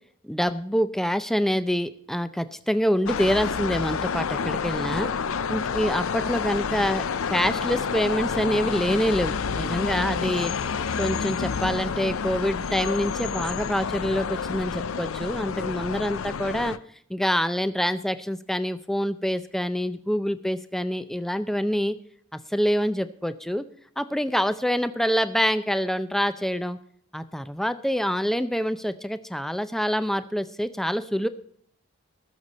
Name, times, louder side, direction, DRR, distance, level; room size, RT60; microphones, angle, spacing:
voice 1, 0.2-5.1 5.5-7.0 7.3-10.5 11.0-16.8 17.1-22.0 22.3-23.6 24.0-26.8 27.1-31.3, equal, ahead, 12 dB, 0.5 m, -26 dB
sound 1, 3.1-16.8, left 6 dB, 80° left, 0.5 m, -29 dB
19.0 x 6.6 x 4.1 m, 0.63 s
head